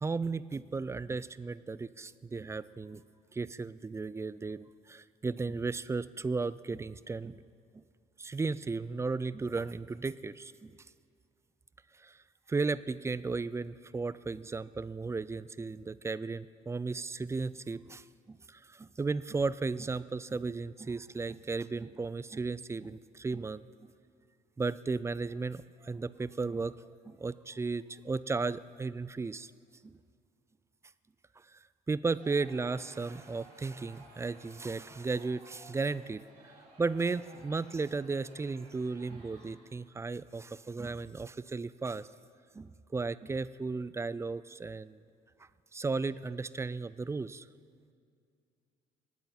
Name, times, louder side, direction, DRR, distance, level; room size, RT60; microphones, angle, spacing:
voice 1, 0.0-3.0 3.3-7.4 7.7-7.8 8.2-10.8 12.0-12.2 12.5-23.7 24.6-26.8 27.0-29.5 29.8-30.0 31.4-31.6 31.9-36.2 36.8-42.1 42.5-45.0 45.7-47.5, right 4 dB, 15° right, 17 dB, 0.4 m, -35 dB
Crowd, 32.1-39.8, right 1 dB, 65° right, 4.0 m, -57 dB
18.5 x 8.9 x 4.3 m, 2.3 s
supercardioid pair, 65°, 16 cm